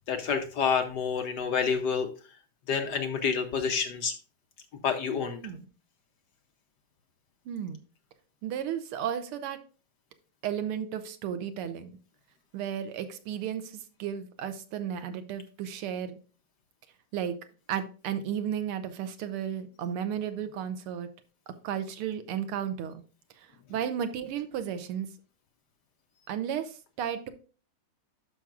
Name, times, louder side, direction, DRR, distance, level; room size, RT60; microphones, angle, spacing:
voice 1, 0.1-2.1 2.7-4.1 4.8-5.4, left 6 dB, 65° left, 5 dB, 1.1 m, -28 dB
voice 2, 7.5-7.8 8.4-9.6 10.4-12.0 12.5-16.2 17.1-17.4 17.7-21.1 21.5-23.0 23.4-25.1 26.3-27.3, right 9 dB, 90° right, 10 dB, 1.7 m, -34 dB
12.0 x 5.7 x 2.4 m, 0.37 s
omnidirectional pair, 2.3 m